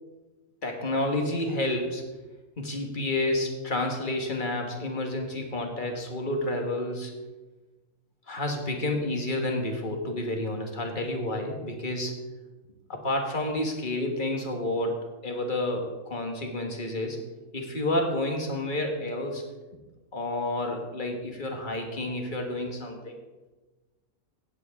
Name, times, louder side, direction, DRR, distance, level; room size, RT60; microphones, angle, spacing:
voice 1, 0.6-2.0 2.6-7.1 8.3-12.1 12.9-14.9 15.2-17.2 17.5-19.4 20.1-23.2, left 1 dB, 35° left, 3 dB, 1.6 m, -30 dB
17.0 x 7.8 x 3.6 m, 1.2 s
omnidirectional pair, 1.6 m